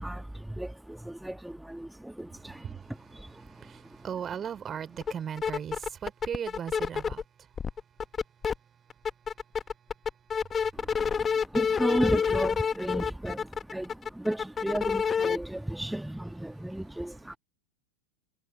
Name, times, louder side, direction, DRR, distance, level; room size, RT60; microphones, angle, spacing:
voice 1, 0.0-4.0 10.7-17.4, right 1 dB, 5° right, 1.5 m, -34 dB
voice 2, 2.4-7.5 8.6-8.7 9.0-9.3 10.2-10.4 16.5-17.1, right 8 dB, 25° right, 3.8 m, -39 dB
sound 1, 5.0-5.1 5.4-7.2 7.6-8.5 8.9-15.4, left 6 dB, 20° left, 1.3 m, -28 dB
figure-of-eight pair, 90°, 0 cm